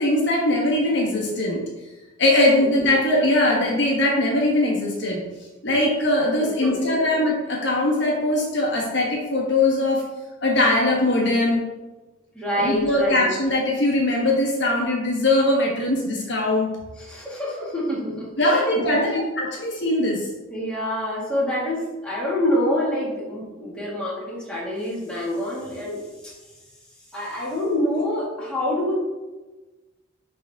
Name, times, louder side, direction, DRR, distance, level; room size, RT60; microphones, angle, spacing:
voice 1, 0.0-1.6 2.2-5.2 5.6-10.0 10.4-11.6 12.5-16.7 18.4-20.3, left 1 dB, 60° left, -2 dB, 1.4 m, -21 dB
voice 2, 6.4-7.0 12.3-13.2 17.0-19.2 20.5-26.4 27.1-29.0, left 1 dB, 5° left, -7 dB, 2.1 m, -27 dB
11.0 x 3.7 x 3.6 m, 1.2 s
head